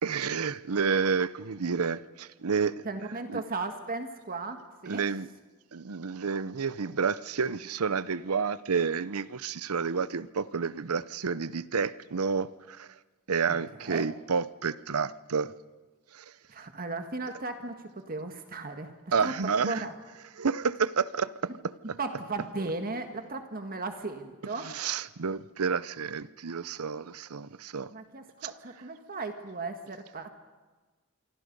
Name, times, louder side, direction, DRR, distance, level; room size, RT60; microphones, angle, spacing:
voice 1, 0.0-2.8 3.3-3.4 4.9-5.3 5.7-12.9 13.3-15.5 16.1-16.2 19.1-19.8 20.4-21.5 24.6-27.9, right 5 dB, 80° right, 17 dB, 0.7 m, -30 dB
voice 2, 2.8-5.0 13.5-13.6 13.8-14.1 16.5-18.9 19.2-19.9 22.0-24.7 27.9-30.3, right 3 dB, 45° right, 6 dB, 1.7 m, -36 dB
27.0 x 24.5 x 5.4 m, 1.3 s
head